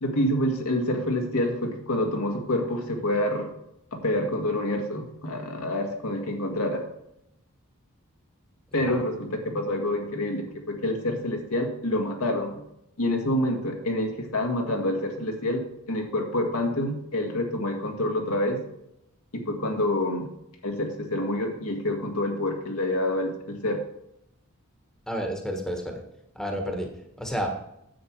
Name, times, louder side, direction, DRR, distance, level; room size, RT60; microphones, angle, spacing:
voice 1, 0.0-3.5 3.9-6.8 8.7-12.6 13.0-18.6 19.3-20.3 20.6-23.8, left 1 dB, 80° left, 2 dB, 2.0 m, -27 dB
voice 2, 25.1-26.0 26.3-26.9 27.2-27.5, equal, ahead, 3 dB, 1.4 m, -30 dB
10.0 x 7.9 x 4.7 m, 0.80 s
head